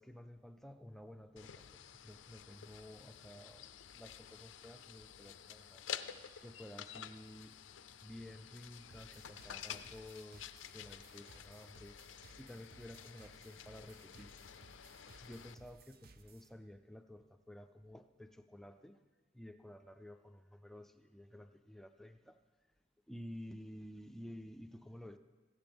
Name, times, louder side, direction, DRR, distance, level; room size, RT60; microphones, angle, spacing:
voice 1, 0.0-5.8 6.4-7.5 8.0-12.0 12.4-14.3 15.2-19.0 19.3-22.4 23.1-25.2, left 1 dB, ahead, 8 dB, 0.4 m, -52 dB
sound 1, 1.4-15.5, left 9 dB, 80° left, 0.5 m, -51 dB
sound 2, 8.9-16.5, right 3 dB, 50° right, 0.6 m, -61 dB
15.5 x 14.0 x 3.5 m, 1.4 s
head